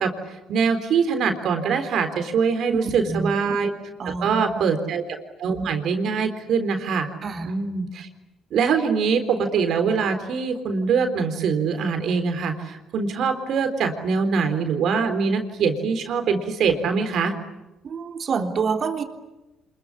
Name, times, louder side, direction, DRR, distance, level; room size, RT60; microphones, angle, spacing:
voice 1, 0.0-3.7 4.2-5.0 5.4-7.1 7.4-8.1 8.5-17.3, right 5 dB, 65° right, 7 dB, 3.8 m, -23 dB
voice 2, 2.7-3.3 4.0-4.6 7.2-7.5 17.8-19.0, right 5 dB, 50° right, 5 dB, 3.6 m, -27 dB
26.5 x 22.0 x 10.0 m, 1.0 s
hypercardioid pair, 60°, 0 cm